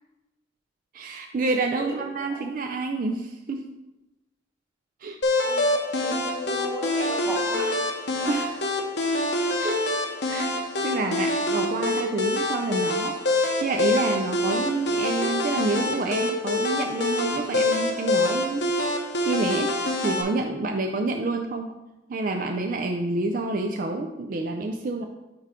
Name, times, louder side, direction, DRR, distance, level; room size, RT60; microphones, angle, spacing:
voice 1, 0.9-3.7 5.0-5.2 8.2-8.6 9.6-9.8 10.3-10.5 10.8-21.7 22.1-25.0, right 3 dB, 50° right, 4 dB, 0.4 m, -28 dB
voice 2, 1.8-2.4 5.4-5.6 5.9-7.8, equal, 15° right, 0 dB, 1.0 m, -36 dB
sound 1, 5.2-20.2, left 2 dB, 65° left, 0.9 m, -26 dB
9.8 x 3.7 x 3.6 m, 1.0 s
head